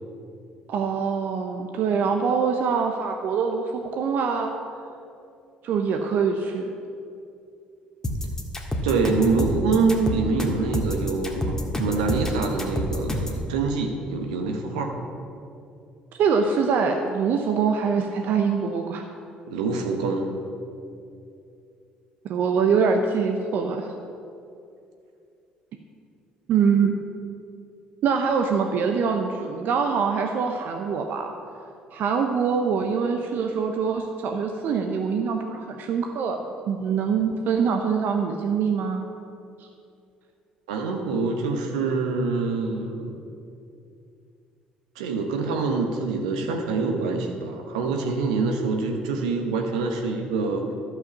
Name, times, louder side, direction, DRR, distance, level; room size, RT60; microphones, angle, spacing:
voice 1, 0.7-4.5 5.6-6.7 16.1-19.0 22.3-23.9 26.5-27.0 28.0-31.3 31.9-39.1, right 6 dB, 60° right, 4 dB, 0.8 m, -24 dB
sound 1, 8.0-13.4, left 1 dB, 15° left, 1.8 m, -27 dB
voice 2, 8.8-14.9 19.5-20.3 40.7-43.2 44.9-50.6, right 4 dB, 85° right, 3 dB, 1.2 m, -25 dB
12.0 x 5.7 x 7.1 m, 2.5 s
hypercardioid pair, 55°, 4 cm